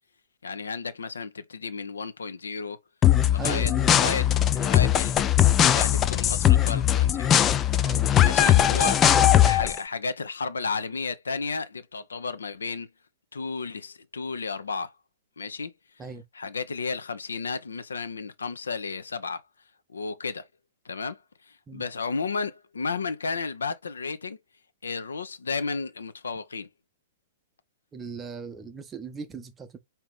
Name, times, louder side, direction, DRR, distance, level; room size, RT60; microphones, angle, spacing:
voice 1, 0.4-2.8 3.3-5.3 5.6-7.4 8.2-9.1 9.5-12.9 13.3-14.9 15.4-15.7 16.3-19.4 19.9-20.5 20.8-21.2 21.5-24.4 24.8-26.7, left 4 dB, 70° left, 0.6 m, -33 dB
sound 1, 3.0-9.8, left 11 dB, 20° left, 0.3 m, -20 dB
voice 2, 3.4-4.0 7.8-8.1 16.0-16.2 21.7-21.8 27.9-29.8, right 4 dB, 15° right, 0.7 m, -38 dB
4.7 x 2.8 x 3.5 m
figure-of-eight pair, 110°, 0 cm